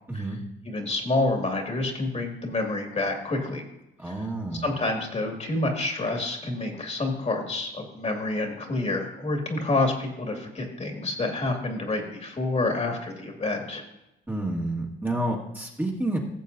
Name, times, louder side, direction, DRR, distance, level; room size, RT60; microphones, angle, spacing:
voice 1, 0.1-0.4 4.0-4.7 14.3-16.2, right 1 dB, 10° right, -2 dB, 1.8 m, -29 dB
voice 2, 0.7-3.7 4.5-13.8, left 2 dB, 35° left, 2 dB, 2.1 m, -28 dB
17.0 x 7.3 x 2.7 m, 0.88 s
cardioid pair, 90°, 20 cm